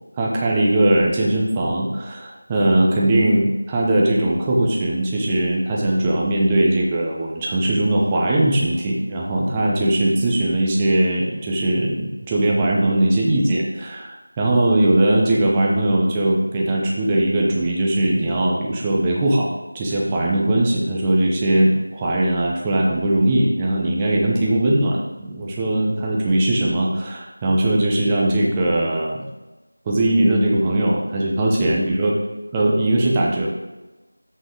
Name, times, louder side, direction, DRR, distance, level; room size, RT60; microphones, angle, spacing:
voice 1, 0.2-19.5 19.7-29.2 29.9-32.1 32.5-33.5, right 1 dB, 10° right, -3 dB, 0.7 m, -20 dB
7.3 x 6.3 x 3.7 m, 1.1 s
figure-of-eight pair, 175°, 0 cm